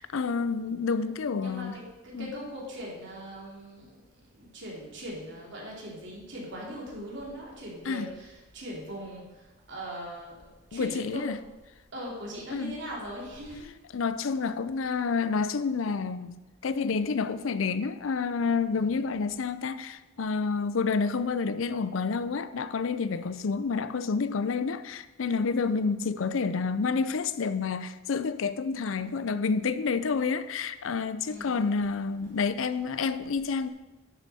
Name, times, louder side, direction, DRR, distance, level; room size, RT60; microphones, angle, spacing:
voice 1, 0.0-1.8 2.1-2.3 7.9-8.1 10.7-11.4 12.5-12.8 13.9-33.7, left 5 dB, 75° left, 0.5 m, -29 dB
voice 2, 1.0-3.9 4.4-9.2 9.7-10.3 10.7-11.3 11.9-13.7 18.7-19.1 31.3-31.7, equal, 60° right, 3.0 m, -40 dB
11.5 x 7.0 x 4.2 m
head